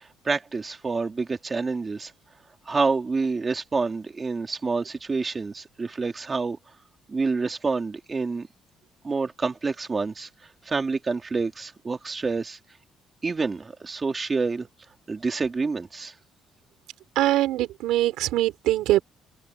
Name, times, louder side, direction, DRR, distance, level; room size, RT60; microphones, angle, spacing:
voice 1, 0.0-2.1 2.7-6.6 7.1-8.5 9.0-12.6 13.2-14.7 15.1-16.1, right 4 dB, 25° right, 2.7 m, -28 dB
voice 2, 17.2-19.0, right 14 dB, 85° right, 4.2 m, -22 dB
open air
cardioid pair, 110°, 0 cm